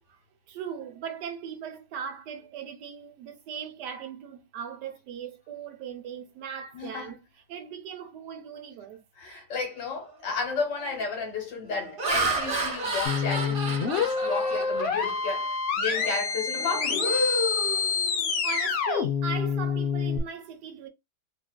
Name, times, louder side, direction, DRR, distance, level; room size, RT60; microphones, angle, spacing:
voice 1, 0.5-7.2 7.5-9.0 18.4-20.9, right 6 dB, 85° right, 1.4 m, -38 dB
voice 2, 6.7-7.1 9.2-17.3, left 5 dB, 90° left, 1.8 m, -33 dB
Laughter, 9.9-10.2 10.7-11.0 11.6-15.5 15.9-16.1 16.5-18.5, right 2 dB, 45° right, 0.8 m, -31 dB
sound 1, 13.1-20.2, left 5 dB, 70° left, 0.6 m, -27 dB
3.5 x 2.4 x 2.2 m
omnidirectional pair, 1.8 m